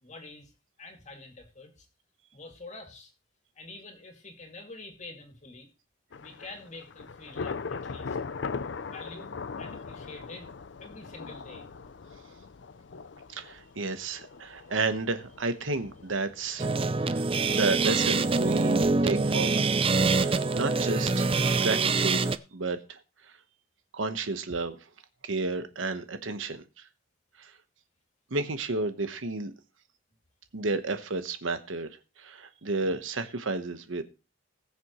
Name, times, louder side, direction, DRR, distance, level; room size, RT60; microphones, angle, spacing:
voice 1, 0.0-0.5 0.8-1.9 2.3-3.1 3.6-5.7 6.2-8.2 8.9-10.5 10.8-11.7, left 2 dB, 35° left, 2.4 m, -46 dB
Thunder / Rain, 6.1-19.7, left 5 dB, 60° left, 0.5 m, -41 dB
voice 2, 13.3-16.7 17.0-19.7 20.1-23.3 23.9-24.8 25.2-26.9 27.4-27.5 28.3-29.5 30.5-31.9 32.2-34.0, right 3 dB, 80° right, 1.2 m, -32 dB
sound 1, 16.6-22.4, right 3 dB, 30° right, 0.5 m, -25 dB
20.5 x 6.9 x 3.1 m
head